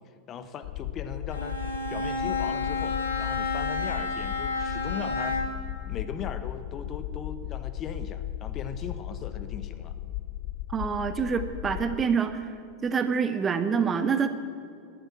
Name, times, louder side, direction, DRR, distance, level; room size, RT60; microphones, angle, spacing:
voice 1, 0.3-5.5 5.9-9.9, left 6 dB, 30° left, 10 dB, 1.0 m, -39 dB
sound 1, 0.6-12.0, left 14 dB, 50° left, 0.4 m, -36 dB
Bowed string instrument, 1.3-5.7, left 3 dB, 70° left, 1.7 m, -30 dB
voice 2, 10.7-12.5 12.8-14.3, right 6 dB, 20° right, 10 dB, 0.7 m, -26 dB
12.0 x 11.0 x 9.0 m, 2.5 s
figure-of-eight pair, 90°, 0 cm